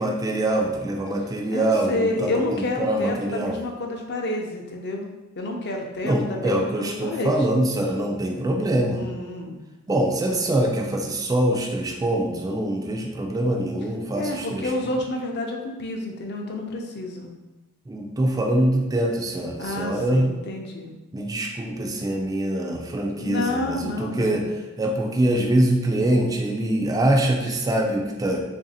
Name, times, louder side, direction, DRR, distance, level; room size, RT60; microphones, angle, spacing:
voice 1, 0.0-3.6 6.0-9.1 9.9-14.7 17.9-20.3 21.1-24.4 24.8-28.4, right 1 dB, 15° right, 1 dB, 0.3 m, -24 dB
voice 2, 1.5-5.1 5.4-7.3 9.0-9.5 14.1-17.3 19.6-20.9 23.2-24.4 27.4-27.5, left 2 dB, 50° left, 1 dB, 0.6 m, -29 dB
3.2 x 2.6 x 4.0 m, 1.1 s
head